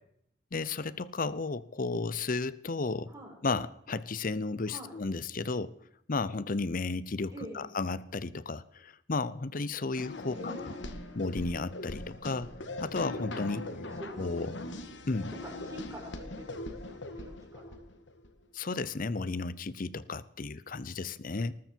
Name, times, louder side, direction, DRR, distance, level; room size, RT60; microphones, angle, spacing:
voice 1, 0.5-3.1 3.4-5.8 6.1-10.7 11.2-12.5 12.8-13.7 14.2-14.5 15.0-15.3 18.5-21.5, left 3 dB, 45° left, 0.7 m, -33 dB
voice 2, 7.3-7.7 10.2-11.3 13.9-14.3 15.3-17.8, equal, 20° right, 4.6 m, -46 dB
sound 1, 10.0-18.3, left 2 dB, 70° left, 1.8 m, -41 dB
20.0 x 13.5 x 4.5 m
head